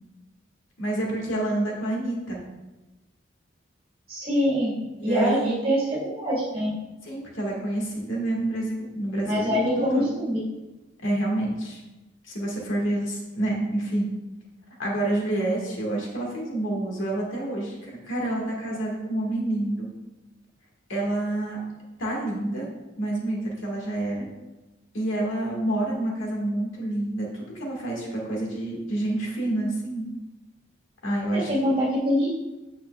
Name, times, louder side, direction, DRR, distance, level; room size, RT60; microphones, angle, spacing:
voice 1, 0.8-2.4 5.0-5.6 7.0-10.1 11.0-11.8 12.3-14.1 14.8-19.9 20.9-21.6 22.0-22.7 23.0-24.3 24.9-30.1 31.0-31.7, right 1 dB, 85° left, -2 dB, 1.8 m, -28 dB
voice 2, 4.1-6.7 9.2-10.4 31.3-32.3, equal, 30° right, -6 dB, 2.3 m, -24 dB
8.7 x 5.7 x 2.4 m, 1.1 s
head